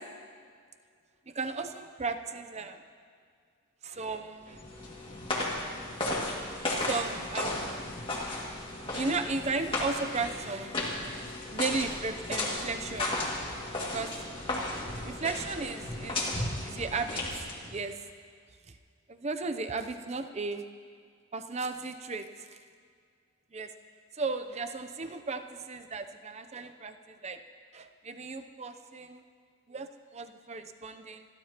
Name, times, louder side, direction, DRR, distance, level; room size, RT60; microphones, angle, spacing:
voice 1, 1.3-2.8 3.8-4.6 6.7-7.7 8.1-8.2 8.9-10.7 11.3-13.1 13.8-14.1 14.9-16.3 16.6-17.2 17.7-17.9 18.7-18.8 19.1-20.6 21.3-22.5 23.5-23.7 24.1-27.4 27.7-29.2 29.7-31.2, right 3 dB, 30° right, 8 dB, 0.5 m, -35 dB
sound 1, 4.4-17.7, left 2 dB, 25° left, 2.1 m, -34 dB
29.5 x 12.5 x 2.9 m, 2.1 s
head